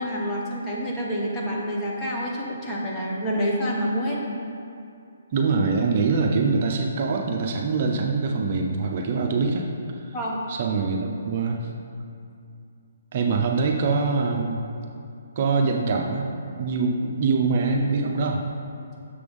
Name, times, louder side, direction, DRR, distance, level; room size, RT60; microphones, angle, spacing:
voice 1, 0.0-4.2 10.1-10.4, equal, 15° left, -4 dB, 1.1 m, -27 dB
voice 2, 5.3-9.7 10.5-11.7 13.1-14.6 15.4-16.3 16.6-18.4, right 4 dB, 45° right, 1 dB, 0.5 m, -24 dB
6.8 x 3.4 x 5.3 m, 2.5 s
hypercardioid pair, 150°, 0 cm